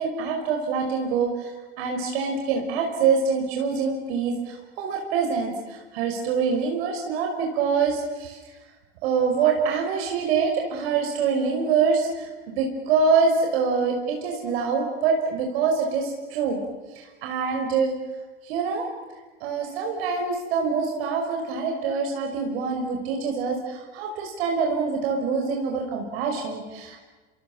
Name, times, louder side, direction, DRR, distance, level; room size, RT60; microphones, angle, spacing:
voice 1, 0.0-8.4 9.0-12.3 12.6-16.6 17.0-17.9 18.5-18.8 19.4-27.0, right 5 dB, 70° right, 1 dB, 5.5 m, -25 dB
28.5 x 27.5 x 7.4 m, 1.3 s
hypercardioid pair, 85°, 33 cm